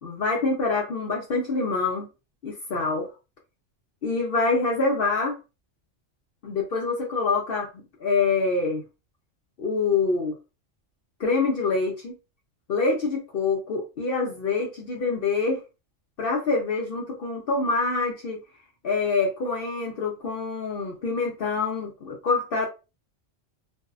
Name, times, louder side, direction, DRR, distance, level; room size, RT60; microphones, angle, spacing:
voice 1, 0.0-2.1 2.4-3.1 4.0-5.4 6.4-8.8 9.6-10.3 11.2-12.2 12.7-15.6 16.2-18.4 18.8-22.7, left 4 dB, 60° left, 0.7 m, -26 dB
2.6 x 2.1 x 2.3 m
omnidirectional pair, 1.3 m